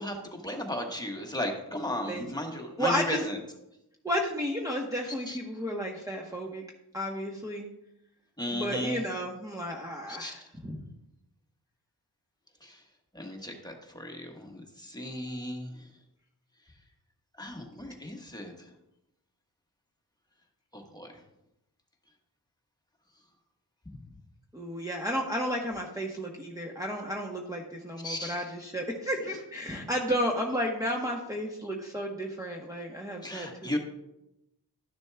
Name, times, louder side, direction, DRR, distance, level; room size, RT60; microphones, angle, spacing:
voice 1, 0.0-3.4 5.3-5.4 8.4-9.0 10.1-10.4 12.6-12.8 13.1-15.9 17.4-18.5 20.7-21.1 28.0-28.4 33.2-33.8, left 1 dB, 10° left, 1 dB, 1.3 m, -35 dB
voice 2, 2.1-3.2 4.0-6.6 6.9-7.7 8.5-10.8 24.5-33.8, equal, 10° right, -2 dB, 1.0 m, -33 dB
12.0 x 6.8 x 2.3 m, 0.86 s
wide cardioid pair, 70°, 39 cm